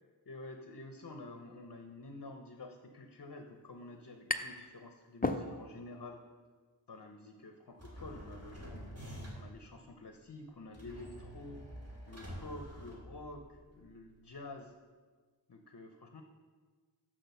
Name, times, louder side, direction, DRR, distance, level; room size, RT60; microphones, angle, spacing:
voice 1, 0.3-6.2 6.9-8.8 9.3-11.6 12.1-14.7 15.5-16.2, left 2 dB, 50° left, 5 dB, 0.7 m, -49 dB
sound 1, 3.5-4.7 5.0-5.9, left 2 dB, 20° left, 0.5 m, -36 dB
sound 2, 7.8-9.6 10.7-13.6, equal, 35° right, 2.2 m, -47 dB
6.2 x 6.1 x 6.7 m, 1.5 s
wide cardioid pair, 45°, 45 cm